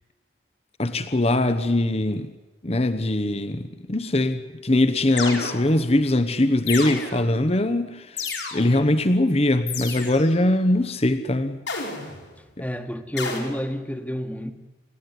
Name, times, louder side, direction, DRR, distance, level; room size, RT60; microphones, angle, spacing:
voice 1, 0.8-2.3 2.6-11.6 12.6-12.7, left 1 dB, 35° left, 1.0 m, -22 dB
sound 1, 5.2-5.9 6.7-7.4 8.2-8.9 9.7-10.4 11.7-12.3 13.2-13.4, left 4 dB, 90° left, 5.4 m, -31 dB
voice 2, 12.6-14.5, equal, 10° left, 1.5 m, -29 dB
29.0 x 15.0 x 9.9 m
head